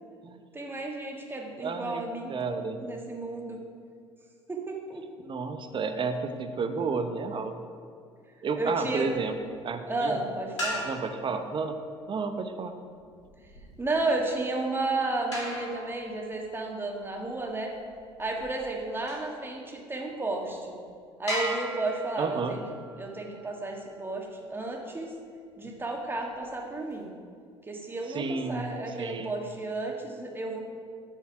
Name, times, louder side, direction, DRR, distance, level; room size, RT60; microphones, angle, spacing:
voice 1, 0.5-2.3 2.8-3.6 4.5-5.0 8.6-9.1 9.9-10.9 13.8-17.7 18.2-20.7 21.2-22.6 23.0-25.1 25.6-27.1 27.7-30.6, right 2 dB, 15° right, 0 dB, 1.7 m, -32 dB
voice 2, 1.6-2.0 2.3-2.9 5.2-7.5 8.4-9.3 9.6-10.2 10.9-11.8 12.1-12.7 22.2-22.6 28.1-28.7 29.0-29.3, right 4 dB, 35° right, 8 dB, 0.9 m, -31 dB
sound 1, 10.6-11.3 12.9-19.4 20.1-20.2 20.6-20.7 21.3-23.9 26.0-27.0, equal, 85° left, 2.3 m, -39 dB
10.5 x 4.6 x 5.9 m, 2.2 s
hypercardioid pair, 60°, 15 cm